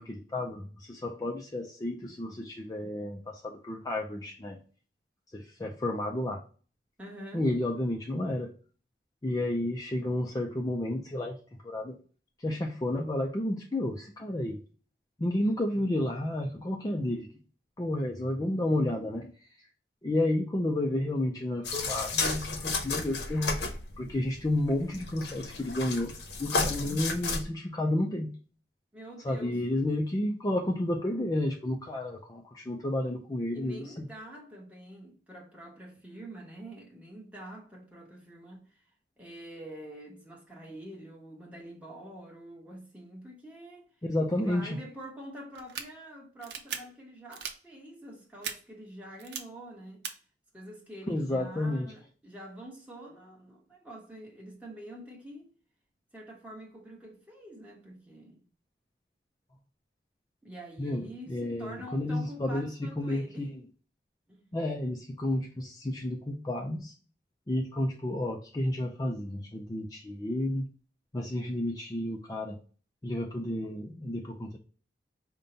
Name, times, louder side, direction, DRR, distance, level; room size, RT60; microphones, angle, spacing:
voice 1, 0.0-4.6 5.3-6.4 7.3-8.5 9.2-12.0 12.4-14.6 15.2-17.4 17.8-19.3 20.0-23.6 24.0-26.1 26.4-28.3 29.2-34.0 44.0-44.8 51.1-51.9 60.8-63.5 64.5-66.9 67.5-70.7 71.1-72.6 73.0-74.6, left 1 dB, 20° left, 0.4 m, -31 dB
voice 2, 7.0-7.5 28.9-29.6 33.5-38.7 39.2-43.9 44.3-50.0 50.5-55.5 56.1-58.5 60.4-63.5 64.3-64.4, right 1 dB, 10° right, 1.2 m, -46 dB
sound 1, 21.6-27.4, left 3 dB, 75° left, 0.8 m, -33 dB
sound 2, 45.6-45.8 46.4-46.8 47.3-47.5 48.4-48.5 49.2-49.4 50.0-50.1, right 7 dB, 70° right, 0.7 m, -36 dB
5.3 x 2.2 x 3.8 m
head